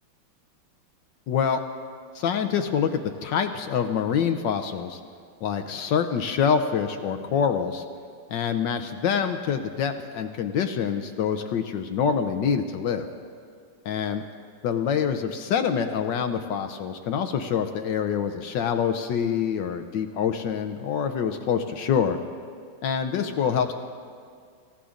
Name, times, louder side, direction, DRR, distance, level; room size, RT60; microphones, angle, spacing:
voice 1, 1.3-1.6 2.1-5.0 5.4-7.8 8.3-13.1 13.8-14.2 14.6-22.2 22.8-23.7, left 7 dB, 70° left, 7 dB, 1.2 m, -26 dB
26.0 x 14.5 x 2.5 m, 2.2 s
omnidirectional pair, 2.3 m